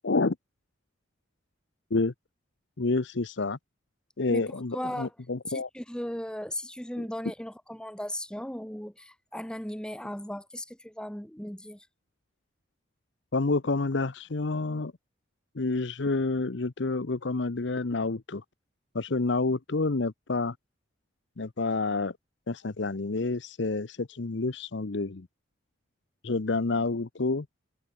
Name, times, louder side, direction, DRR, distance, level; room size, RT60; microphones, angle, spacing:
voice 1, 0.0-0.4 1.9-2.1 2.8-3.6 4.2-5.7 7.0-7.1 13.3-14.9 15.5-18.4 18.9-20.6 21.4-22.2 22.5-25.3 26.2-27.5, left 3 dB, 65° left, 0.8 m, -29 dB
voice 2, 4.7-5.1 5.5-11.8, equal, 5° left, 1.2 m, -37 dB
head